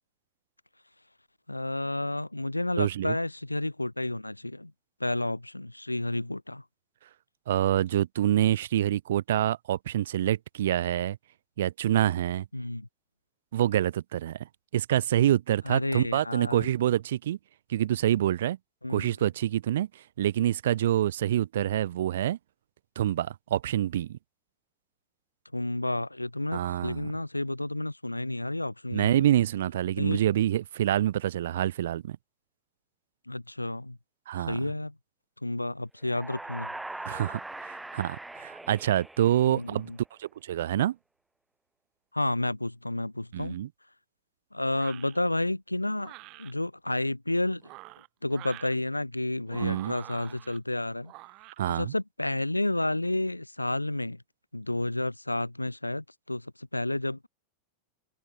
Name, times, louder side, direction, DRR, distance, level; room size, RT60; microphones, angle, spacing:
voice 1, 1.5-4.7 5.0-6.6 12.5-12.9 15.7-16.7 18.8-19.2 25.5-29.3 30.0-30.2 33.3-34.0 34.5-34.9 35.4-36.7 39.5-40.0 42.1-43.6 44.5-46.1 46.4-47.6 48.2-51.1 51.7-54.2 54.5-57.3, left 1 dB, 85° left, 1.8 m, -31 dB
voice 2, 2.8-3.2 7.5-11.2 11.6-12.5 13.5-14.4 14.7-17.4 17.7-18.6 18.9-22.4 23.0-24.2 26.5-27.1 28.9-32.2 34.3-34.6 37.1-39.9 40.2-41.0 43.3-43.7 49.6-49.9 51.6-51.9, right 12 dB, 60° right, 0.6 m, -26 dB
sound 1, 36.0-39.9, right 2 dB, 5° right, 2.1 m, -41 dB
sound 2, 44.7-45.2 46.0-46.5 47.5-48.7 49.4-50.6 51.0-51.6, right 23 dB, 40° right, 1.1 m, -47 dB
open air
figure-of-eight pair, 90°, 0 cm